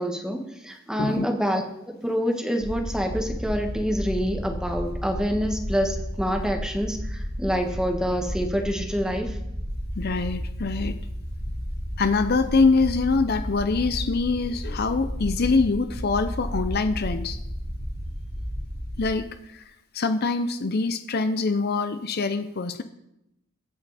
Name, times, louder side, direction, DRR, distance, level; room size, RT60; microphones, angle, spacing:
voice 1, 0.0-9.4, equal, 5° right, 3 dB, 1.5 m, -27 dB
sound 1, 2.6-19.1, equal, 30° right, 3.1 m, -32 dB
voice 2, 10.0-11.0 12.0-17.4 19.0-19.6 19.9-22.8, left 4 dB, 50° left, 10 dB, 0.6 m, -24 dB
23.0 x 8.7 x 4.2 m, 0.86 s
head